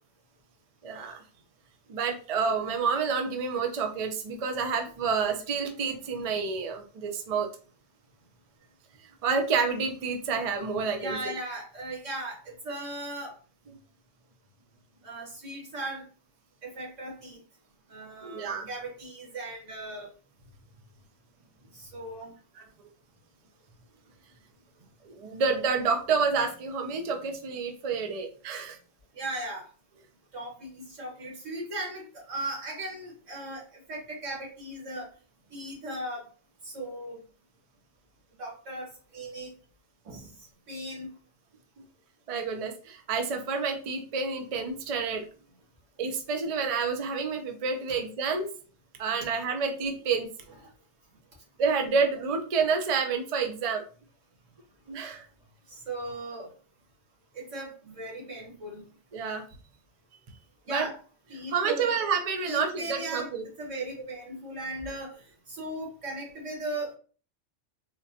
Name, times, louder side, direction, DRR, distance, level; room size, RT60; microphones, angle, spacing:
voice 1, 0.8-1.2 1.9-7.5 9.2-11.2 18.2-18.7 22.5-22.6 25.0-28.8 40.1-40.2 42.3-45.3 46.0-48.5 49.0-50.3 51.6-53.8 54.9-55.2 59.1-59.4 60.7-60.9 61.5-63.4, right 5 dB, 50° right, 5 dB, 0.4 m, -29 dB
voice 2, 11.0-13.3 15.0-16.0 16.6-17.4 17.9-20.1 21.7-22.3 29.2-29.7 30.3-33.6 33.9-35.1 35.5-36.2 36.6-37.2 38.4-38.9 39.1-39.5 40.1-40.2 40.7-41.1 55.7-56.5 57.3-58.9 60.7-60.9 61.3-61.9 62.5-63.3 63.6-65.2 65.5-66.9, right 1 dB, 85° right, -2 dB, 1.7 m, -37 dB
3.9 x 2.2 x 2.7 m, 0.38 s
omnidirectional pair, 1.3 m